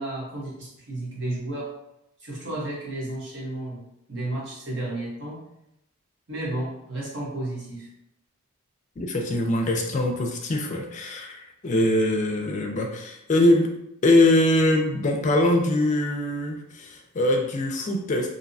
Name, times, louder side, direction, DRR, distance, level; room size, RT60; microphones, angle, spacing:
voice 1, 0.0-1.7 2.2-5.4 6.3-7.9, right 1 dB, 55° right, -5 dB, 1.0 m, -32 dB
voice 2, 9.0-13.7 14.0-18.3, left 1 dB, 35° left, 2 dB, 0.4 m, -22 dB
2.6 x 2.1 x 2.5 m, 0.82 s
head